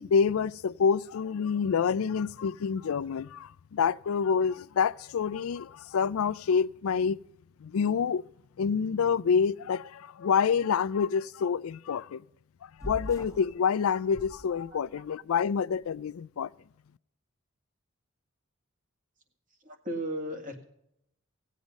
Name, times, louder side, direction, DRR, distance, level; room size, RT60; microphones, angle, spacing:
voice 1, 0.0-7.2 7.6-8.2 8.6-12.2 12.8-16.5, left 6 dB, 85° left, 0.4 m, -27 dB
sound 1, 12.8-13.5 14.1-15.0, left 1 dB, 15° left, 1.2 m, -41 dB
voice 2, 19.6-20.7, right 1 dB, 40° right, 2.0 m, -35 dB
17.5 x 8.4 x 5.2 m
head